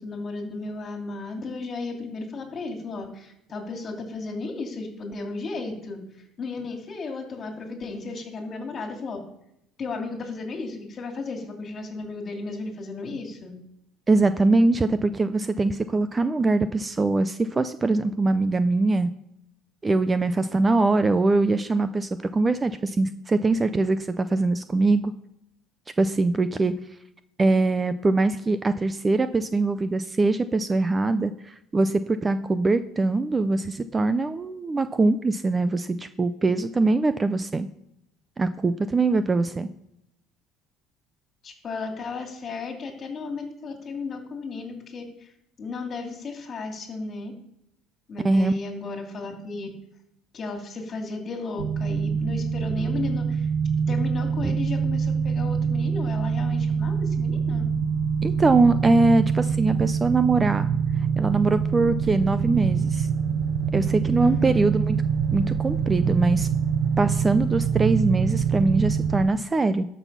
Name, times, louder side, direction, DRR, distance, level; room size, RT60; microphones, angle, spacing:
voice 1, 0.0-9.2 9.8-13.5 41.4-45.3 45.6-47.3 48.1-49.7 50.3-53.5 53.9-57.6 64.2-64.6, left 3 dB, 30° left, 3 dB, 2.8 m, -34 dB
voice 2, 14.1-19.1 19.8-25.1 26.0-26.7 27.4-37.7 38.4-39.7 48.2-48.5 54.4-54.5 58.2-60.7 61.2-63.1 63.7-65.0 65.3-66.5 67.0-69.9, right 3 dB, 15° right, 12 dB, 0.5 m, -22 dB
sound 1, 51.6-69.3, right 6 dB, 80° right, 0.8 m, -25 dB
13.0 x 6.2 x 5.7 m, 0.80 s
cardioid pair, 135°, 0 cm